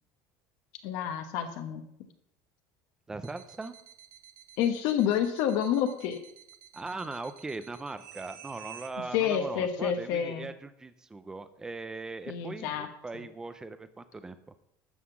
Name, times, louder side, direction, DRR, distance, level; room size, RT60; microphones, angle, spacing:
voice 1, 0.8-2.1 4.6-6.2 9.1-10.5 12.3-12.9, left 9 dB, 55° left, 6 dB, 1.2 m, -29 dB
voice 2, 3.1-3.8 6.7-14.4, right 3 dB, 10° right, 11 dB, 0.6 m, -39 dB
sound 1, 3.2-8.9, right 10 dB, 60° right, 1.2 m, -51 dB
12.5 x 5.8 x 7.1 m, 0.75 s
cardioid pair, 180°, 8 cm